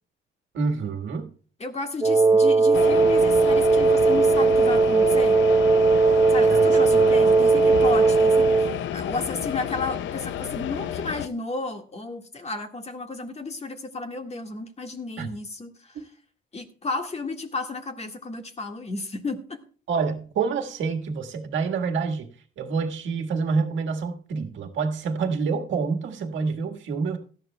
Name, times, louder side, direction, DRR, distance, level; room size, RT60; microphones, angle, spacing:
voice 1, 0.5-1.3 6.5-7.1 15.2-15.3 19.9-22.3 22.6-27.2, right 5 dB, 70° right, 1.6 m, -27 dB
voice 2, 1.6-5.4 6.3-16.0 16.5-19.6, left 3 dB, 35° left, 1.7 m, -32 dB
Wind instrument woodwind instrument, 2.0-8.8, right 4 dB, 15° right, 2.5 m, -18 dB
sound 1, 2.7-11.3, left 10 dB, 75° left, 0.6 m, -30 dB
17.5 x 12.0 x 2.2 m
cardioid pair, 90°, 20 cm